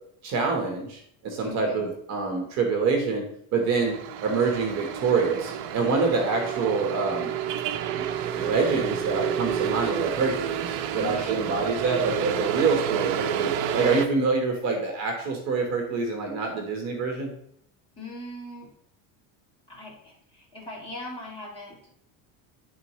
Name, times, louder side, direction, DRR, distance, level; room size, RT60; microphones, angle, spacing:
voice 1, 0.2-3.3 3.5-7.3 8.0-17.3, right 4 dB, 45° right, 2 dB, 1.3 m, -26 dB
voice 2, 1.4-1.9 10.9-11.4 18.0-18.7 19.7-21.8, left 2 dB, 15° left, -6 dB, 2.3 m, -40 dB
sound 1, 3.7-14.1, right 9 dB, 70° right, 0.7 m, -30 dB
10.0 x 4.0 x 3.1 m, 0.70 s
cardioid pair, 155°, 37 cm